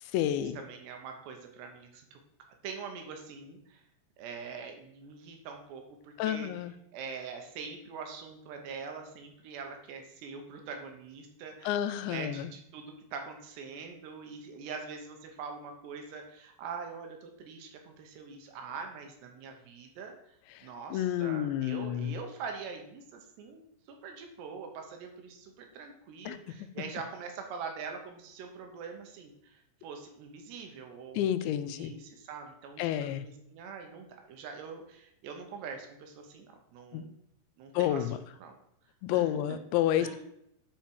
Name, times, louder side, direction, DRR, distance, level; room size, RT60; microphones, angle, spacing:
voice 1, 0.0-0.6 6.2-6.7 11.6-12.5 20.5-22.2 26.3-26.7 31.1-31.9 32.8-33.3 36.9-37.1 37.7-38.2 39.0-40.2, left 11 dB, 90° left, 12 dB, 2.9 m, -30 dB
voice 2, 0.6-2.2 2.6-3.8 4.2-6.5 6.9-11.7 12.0-20.3 20.6-23.6 23.9-37.1 37.6-38.6 39.1-39.4 40.0-40.2, right 5 dB, 75° right, 4 dB, 3.1 m, -43 dB
9.2 x 5.1 x 4.6 m, 0.74 s
omnidirectional pair, 5.1 m